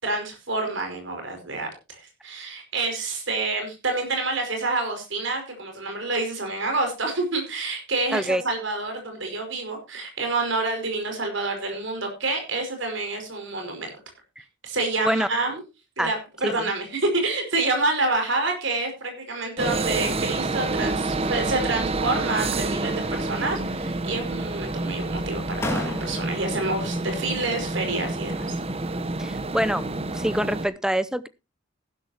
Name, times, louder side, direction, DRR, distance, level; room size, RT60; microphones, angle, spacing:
voice 1, 0.0-13.9 14.6-15.6 16.0-28.6, right 2 dB, 65° right, 4 dB, 5.4 m, -28 dB
voice 2, 8.1-8.4 15.0-15.3 16.0-16.1 16.4-16.7 29.2-29.9 30.1-31.3, equal, 5° right, 16 dB, 0.6 m, -25 dB
sound 1, 19.6-30.7, right 2 dB, 30° right, 0.9 m, -28 dB
sound 2, 22.7-23.5 23.8-24.5 25.2-25.3 25.6-26.5, left 1 dB, 15° left, 2.5 m, -35 dB
15.5 x 12.0 x 2.9 m, 0.27 s
head